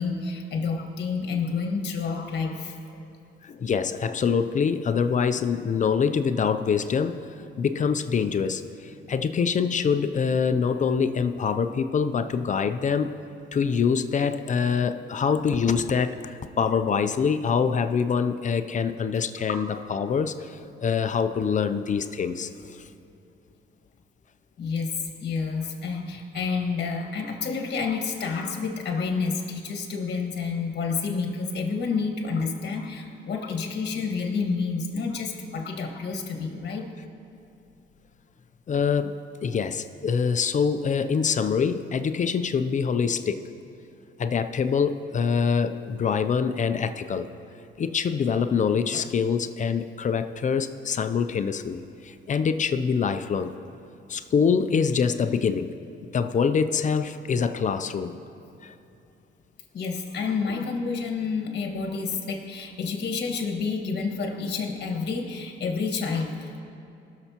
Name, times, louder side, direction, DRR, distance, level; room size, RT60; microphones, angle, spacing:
voice 1, 0.0-3.0 24.6-36.9 59.7-66.6, left 4 dB, 55° left, 2 dB, 1.6 m, -29 dB
voice 2, 3.4-13.2 13.5-22.5 38.7-43.4 44.2-47.3 47.8-53.5 54.1-55.7 56.1-58.1 58.6-58.7, left 6 dB, 40° left, 9 dB, 0.5 m, -25 dB
19.5 x 6.7 x 2.9 m, 2.8 s
cardioid pair, 90°, 20 cm